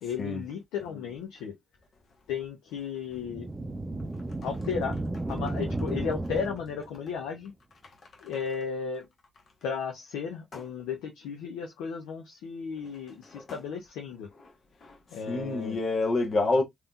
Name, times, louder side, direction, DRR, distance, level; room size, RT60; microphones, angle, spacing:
voice 1, 0.0-1.5 2.3-3.5 4.4-5.0 5.3-7.5 8.2-9.1 9.6-14.3 15.1-15.8, left 6 dB, 80° left, 0.5 m, -34 dB
sound 1, 3.2-7.0, right 2 dB, 30° right, 0.5 m, -33 dB
voice 2, 13.3-13.6 14.8-15.0 15.3-16.6, left 2 dB, 55° left, 1.0 m, -28 dB
3.4 x 3.0 x 2.3 m
hypercardioid pair, 40°, 0 cm